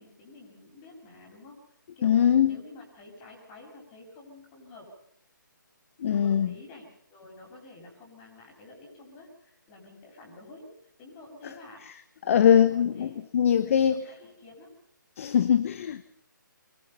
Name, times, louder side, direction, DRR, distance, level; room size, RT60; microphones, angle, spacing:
voice 1, 0.0-1.6 2.0-4.9 6.1-11.8 12.5-13.2 13.6-14.8 15.8-15.9, left 2 dB, 25° left, 1 dB, 7.4 m, -49 dB
voice 2, 2.0-2.6 6.0-6.5 12.2-14.0 15.2-16.1, left 8 dB, 40° left, 14 dB, 0.9 m, -22 dB
23.5 x 23.5 x 5.7 m, 0.72 s
figure-of-eight pair, 150°, 11 cm